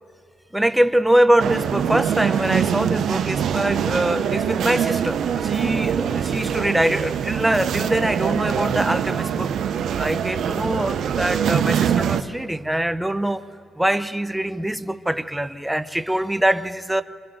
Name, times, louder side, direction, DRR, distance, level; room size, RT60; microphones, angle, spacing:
voice 1, 0.5-9.5 10.0-13.4 13.8-17.0, right 1 dB, 5° right, 0.7 m, -23 dB
sound 1, 1.4-12.2, right 8 dB, 70° right, 0.8 m, -23 dB
28.0 x 25.5 x 3.9 m
cardioid pair, 90°, 0 cm